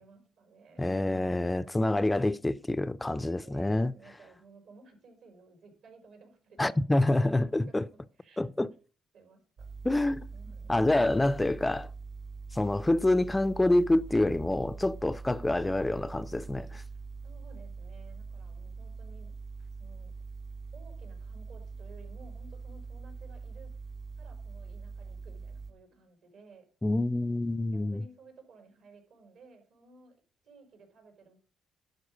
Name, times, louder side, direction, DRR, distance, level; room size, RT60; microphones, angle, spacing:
voice 1, 0.0-2.1 3.0-8.4 9.1-9.7 10.3-10.8 16.7-19.3 19.8-20.1 20.7-23.7 24.2-26.7 27.7-31.4, right 3 dB, 80° right, 4.4 m, -56 dB
voice 2, 0.8-3.9 6.6-7.9 8.4-8.7 9.8-10.3 10.7-11.9 12.5-16.7 26.8-28.0, left 1 dB, 15° left, 0.4 m, -27 dB
sound 1, 9.6-25.7, right 4 dB, 65° right, 3.6 m, -43 dB
11.5 x 4.5 x 6.2 m
cardioid pair, 90°, 0 cm